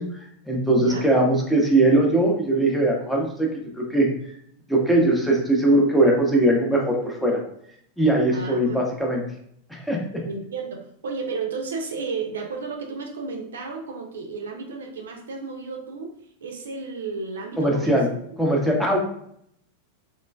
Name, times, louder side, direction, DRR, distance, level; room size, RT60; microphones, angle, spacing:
voice 1, 0.0-3.5 3.8-4.1 4.7-7.4 8.0-9.2 9.7-10.2 17.6-18.1 18.4-19.0, right 1 dB, ahead, -2 dB, 0.7 m, -20 dB
voice 2, 0.8-1.1 8.3-8.8 10.3-16.1 16.4-18.0, right 4 dB, 65° right, 2 dB, 0.5 m, -33 dB
3.1 x 3.0 x 2.2 m, 0.69 s
figure-of-eight pair, 90°, 0 cm